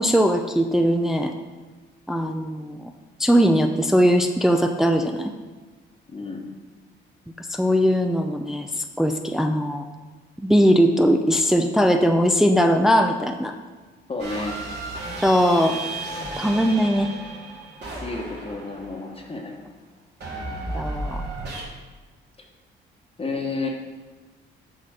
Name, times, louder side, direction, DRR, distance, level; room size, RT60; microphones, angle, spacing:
voice 1, 0.0-1.3 2.1-2.9 3.2-5.3 7.4-8.7 9.0-9.8 10.4-13.5 15.2-15.8 16.4-17.1 20.7-21.2, equal, ahead, 5 dB, 0.5 m, -20 dB
voice 2, 6.1-6.5 14.1-14.6 18.0-19.6 23.2-23.7, left 3 dB, 30° left, 0 dB, 1.2 m, -31 dB
sound 1, 14.2-19.3 20.2-21.6, right 2 dB, 60° right, 2.7 m, -33 dB
7.7 x 4.1 x 6.4 m, 1.3 s
cardioid pair, 90°, 20 cm